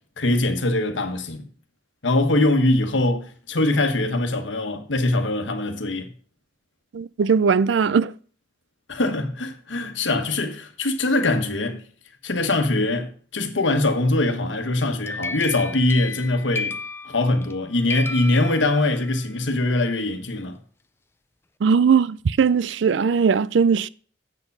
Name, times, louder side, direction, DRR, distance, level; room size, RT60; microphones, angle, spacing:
voice 1, 0.2-1.4 2.0-6.1 8.9-11.8 12.2-16.8 17.0-20.6, left 2 dB, 90° left, 1.2 m, -22 dB
voice 2, 6.9-8.1 21.6-23.9, right 6 dB, 80° right, 0.4 m, -19 dB
sound 1, 14.8-17.6 17.9-19.2, left 3 dB, 15° left, 0.3 m, -33 dB
7.8 x 7.1 x 5.4 m
head